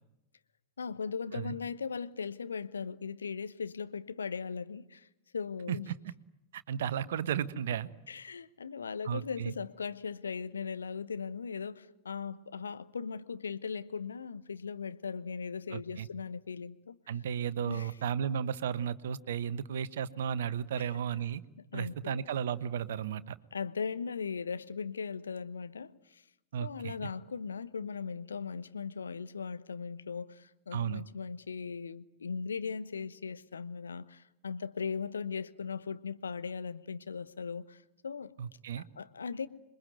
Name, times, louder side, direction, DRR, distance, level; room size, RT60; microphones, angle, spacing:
voice 1, 0.8-5.1 5.3-5.9 8.1-17.0 17.7-17.9 20.8-20.9 21.6-22.2 23.5-26.2 26.6-38.3 38.8-39.5, left 5 dB, 70° left, 13 dB, 1.1 m, -38 dB
voice 2, 6.5-7.9 9.0-9.5 15.7-16.1 17.1-21.4 21.7-23.4 26.5-26.9 30.7-31.0 38.4-38.8, right 8 dB, 60° right, 16 dB, 1.1 m, -34 dB
27.0 x 22.5 x 9.3 m, 0.86 s
figure-of-eight pair, 90°, 0 cm